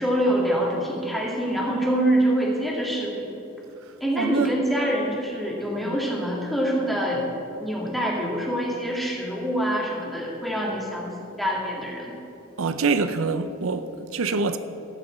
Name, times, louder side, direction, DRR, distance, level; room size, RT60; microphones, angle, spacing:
voice 1, 0.0-3.3 4.0-7.2 7.6-11.1 11.4-12.1, right 1 dB, ahead, 2.5 m, -25 dB
voice 2, 4.2-4.6 5.8-6.0 12.6-14.6, right 4 dB, 85° right, 0.6 m, -25 dB
14.5 x 6.2 x 7.5 m
head